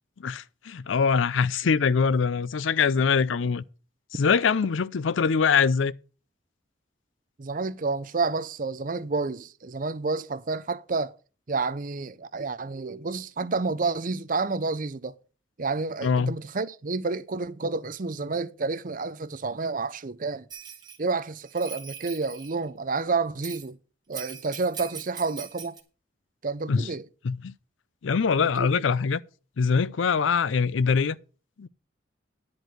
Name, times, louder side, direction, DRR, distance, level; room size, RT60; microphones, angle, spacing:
voice 1, 0.2-3.6 4.1-5.9 16.0-16.3 26.7-26.9 27.2-27.5 28.0-29.2 29.6-31.2 31.6-31.7, left 5 dB, 90° left, 0.5 m, -23 dB
voice 2, 7.4-11.1 11.5-15.2 15.6-20.5 21.0-23.8 24.1-25.8 26.4-27.0 28.5-28.7, right 4 dB, 45° right, 0.6 m, -29 dB
Bell, 20.5-21.0 21.4-22.5 23.4-23.7 24.1-25.8, right 7 dB, 20° right, 1.6 m, -41 dB
10.5 x 4.6 x 7.7 m
head